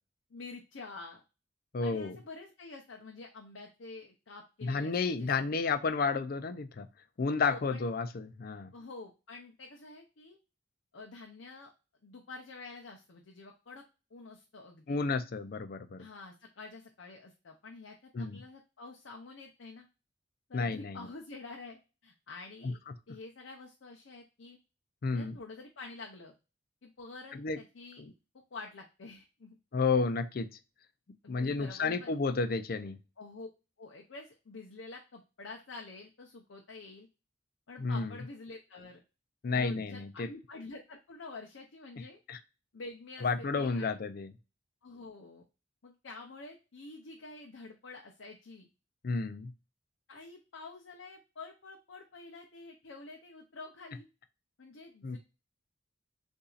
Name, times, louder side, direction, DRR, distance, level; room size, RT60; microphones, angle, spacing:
voice 1, 0.3-1.2 1.8-5.3 7.4-7.8 8.7-10.4 10.9-11.7 12.0-13.8 14.1-15.0 16.0-19.9 20.5-22.8 23.1-24.6 25.1-26.3 26.8-28.0 28.5-29.6 31.2-32.1 33.2-33.5 33.8-37.1 37.7-39.0 39.5-42.2 42.7-43.9 44.8-45.4 45.8-48.7 50.1-54.1 54.6-55.2, left 3 dB, 85° left, 2 dB, 0.7 m, -48 dB
voice 2, 1.7-2.2 4.6-6.9 7.2-8.7 14.9-16.0 18.1-18.4 20.5-21.0 22.6-22.7 25.0-25.4 27.3-27.6 28.0-28.1 29.7-30.5 31.3-33.0 37.8-38.2 39.4-40.3 42.3-42.4 43.2-44.3 49.0-49.5 55.0-55.2, left 4 dB, 50° left, 10 dB, 0.4 m, -31 dB
6.8 x 2.7 x 2.4 m, 0.31 s
head